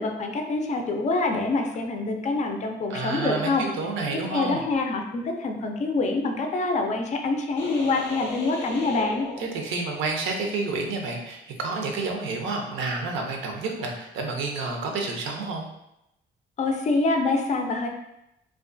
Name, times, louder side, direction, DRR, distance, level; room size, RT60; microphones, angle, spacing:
voice 1, 0.0-3.6 4.3-9.3 16.6-17.9, left 3 dB, 35° left, 3 dB, 0.4 m, -26 dB
voice 2, 2.9-4.6 9.4-15.6, right 3 dB, 80° right, 1 dB, 0.5 m, -29 dB
sound 1, 7.6-10.2, left 2 dB, 90° left, 0.6 m, -37 dB
2.3 x 2.2 x 2.5 m, 0.85 s
cardioid pair, 90°, 20 cm